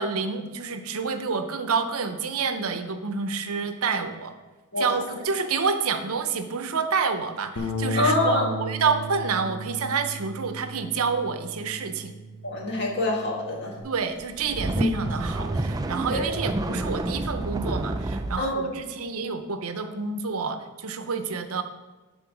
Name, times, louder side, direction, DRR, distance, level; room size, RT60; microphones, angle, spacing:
voice 1, 0.0-4.3 4.8-12.1 13.8-21.6, right 5 dB, 80° right, 8 dB, 0.7 m, -28 dB
Bass guitar, 7.6-13.8, equal, 70° left, 0.9 m, -35 dB
voice 2, 8.0-8.5 12.4-13.7 14.8-14.9 16.1-16.3 18.4-18.8, left 1 dB, 50° left, -2 dB, 1.7 m, -25 dB
sound 1, 14.2-18.5, right 2 dB, 15° right, 0.3 m, -29 dB
10.0 x 3.8 x 6.0 m, 1.2 s
head